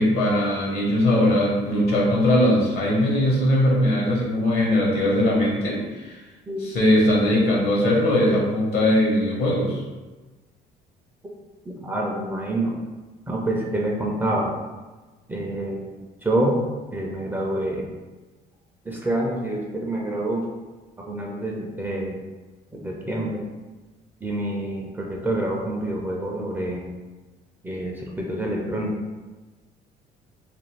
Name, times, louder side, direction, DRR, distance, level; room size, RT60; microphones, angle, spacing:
voice 1, 0.0-6.2 6.6-9.8, left 1 dB, 65° left, -3 dB, 1.0 m, -20 dB
voice 2, 11.7-12.7 13.3-14.5 15.3-15.9 16.2-16.6 16.9-17.9 18.8-20.5 21.0-22.2 22.7-23.4 24.2-26.8 27.6-28.9, right 1 dB, 10° right, -2 dB, 0.4 m, -27 dB
2.5 x 2.3 x 3.1 m, 1.2 s
cardioid pair, 110°, 17 cm